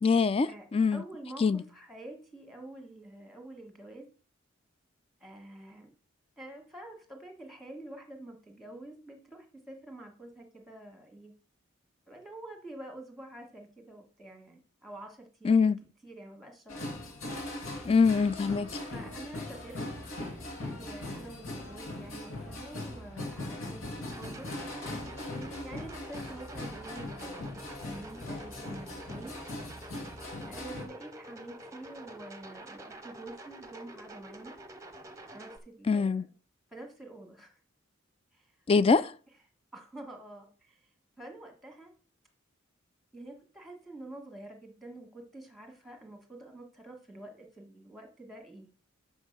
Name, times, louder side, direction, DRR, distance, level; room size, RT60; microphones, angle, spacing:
voice 1, 0.0-1.0 1.4-1.6 15.4-15.8 17.8-18.7 35.9-36.3 38.7-39.0, left 5 dB, 30° left, 0.3 m, -24 dB
voice 2, 0.9-4.1 5.2-5.9 6.4-11.4 12.1-15.7 16.0-17.0 18.8-19.8 20.6-24.5 25.3-27.6 27.8-29.4 30.5-34.5 35.3-36.2 36.7-37.6 38.3-38.5 38.9-39.1 39.7-40.8 41.2-41.9 43.1-48.7, right 1 dB, ahead, 1.5 m, -47 dB
sound 1, 16.7-30.8, left 1 dB, 80° left, 2.1 m, -40 dB
sound 2, 24.1-35.6, right 1 dB, 15° right, 0.8 m, -47 dB
6.0 x 5.4 x 6.5 m
head